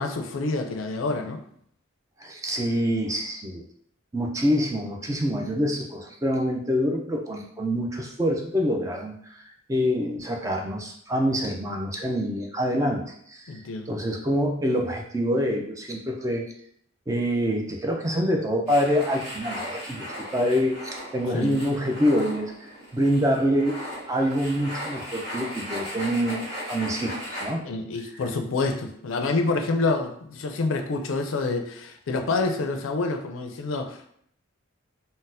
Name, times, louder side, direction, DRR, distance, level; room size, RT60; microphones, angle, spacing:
voice 1, 0.0-1.4 13.5-13.9 21.3-21.6 27.6-34.1, left 3 dB, 75° left, 5 dB, 0.4 m, -27 dB
voice 2, 2.2-3.6 4.1-13.6 13.9-16.4 17.1-20.8 21.1-23.8 24.1-27.6, equal, 15° right, 1 dB, 0.3 m, -26 dB
sound 1, 18.7-27.5, equal, 35° right, 1.5 m, -37 dB
3.9 x 2.0 x 2.6 m, 0.66 s
head